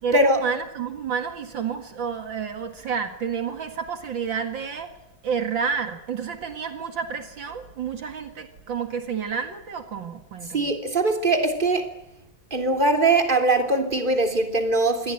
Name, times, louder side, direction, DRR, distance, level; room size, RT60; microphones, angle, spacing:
voice 1, 0.0-4.9 5.2-10.7, right 6 dB, 70° right, 7 dB, 2.6 m, -30 dB
voice 2, 10.5-11.9 12.5-15.1, right 2 dB, 25° right, 5 dB, 3.6 m, -21 dB
26.5 x 22.0 x 9.2 m, 0.83 s
omnidirectional pair, 2.2 m